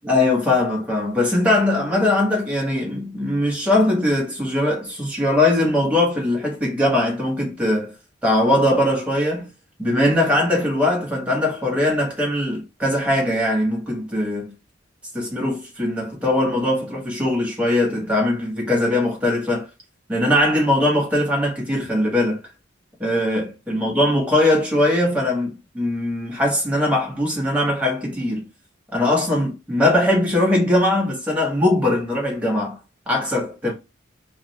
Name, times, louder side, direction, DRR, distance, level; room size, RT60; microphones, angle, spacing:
voice 1, 0.0-7.9 8.2-9.5 9.8-14.5 15.1-19.7 20.1-22.4 23.0-28.5 28.9-32.8 33.1-33.7, left 1 dB, 5° right, 1.1 m, -20 dB
2.4 x 2.4 x 3.0 m
head